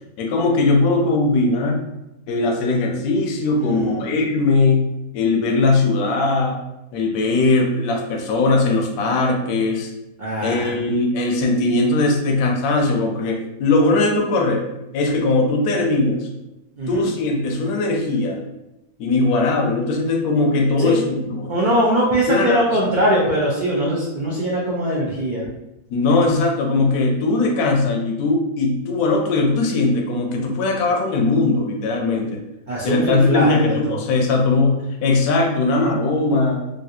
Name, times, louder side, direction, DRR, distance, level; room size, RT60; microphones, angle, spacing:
voice 1, 0.2-1.8 2.3-4.8 5.1-6.6 6.9-9.9 10.4-14.6 14.9-16.3 16.9-18.4 19.0-21.5 22.3-22.7 25.9-32.4 32.8-34.7 35.0-36.6, left 3 dB, 80° left, 1 dB, 1.1 m, -19 dB
voice 2, 3.6-4.1 10.2-10.8 16.8-17.0 20.8-20.9 21.5-25.4 32.7-34.0, right 1 dB, 65° right, -5 dB, 0.4 m, -21 dB
3.2 x 2.6 x 2.7 m, 0.92 s
omnidirectional pair, 1.6 m